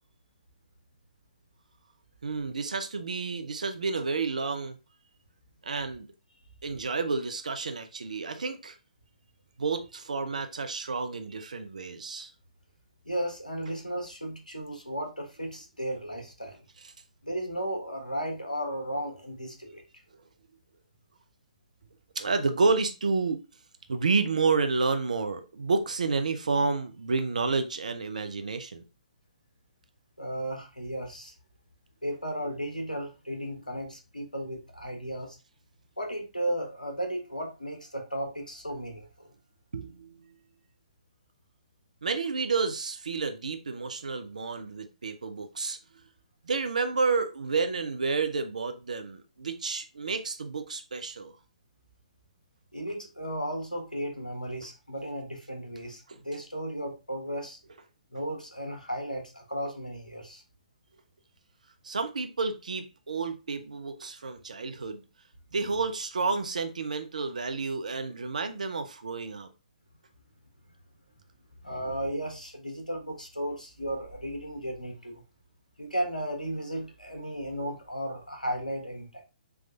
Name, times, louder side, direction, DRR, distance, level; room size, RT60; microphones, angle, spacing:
voice 1, 2.2-4.8 5.6-6.1 6.6-8.8 9.6-12.3 22.2-23.4 23.9-28.8 39.7-40.1 42.0-45.8 46.4-51.3 61.8-65.0 65.5-69.5, right 4 dB, 65° right, 0.6 m, -30 dB
voice 2, 13.0-16.6 17.2-19.8 30.2-31.3 32.0-35.4 36.0-39.1 52.7-57.6 58.1-60.4 71.6-75.2 75.8-79.2, equal, 90° left, 1.0 m, -35 dB
3.5 x 3.1 x 2.4 m
figure-of-eight pair, 125°, 4 cm